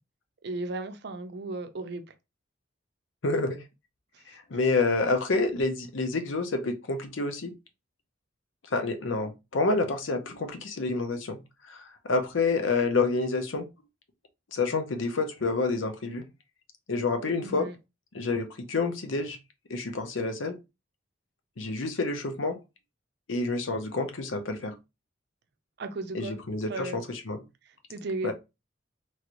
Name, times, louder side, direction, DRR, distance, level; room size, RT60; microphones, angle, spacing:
voice 1, 0.4-2.0 17.4-17.7 25.8-26.4 26.7-27.0 27.7-28.3, right 2 dB, 60° right, 0.5 m, -35 dB
voice 2, 3.2-3.6 4.3-7.5 8.7-11.4 11.7-13.6 14.5-16.2 16.9-17.7 18.1-19.4 19.7-20.6 21.6-22.6 23.3-24.7 26.1-27.4 28.2-28.3, left 3 dB, 85° left, 0.7 m, -28 dB
3.0 x 3.0 x 2.5 m
head